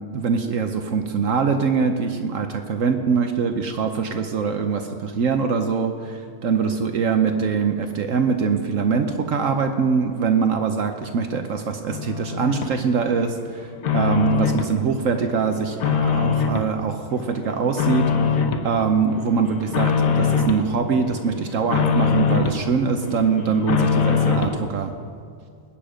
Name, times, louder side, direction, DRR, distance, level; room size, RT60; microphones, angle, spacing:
voice 1, 0.0-25.0, right 5 dB, 60° right, 6 dB, 1.1 m, -23 dB
sound 1, 11.9-12.7 13.2-14.7 15.1-16.7 17.1-18.7 19.1-20.7 21.0-22.6 23.0-24.6, left 6 dB, 65° left, 1.4 m, -23 dB
20.5 x 8.9 x 5.1 m, 2.3 s
omnidirectional pair, 1.6 m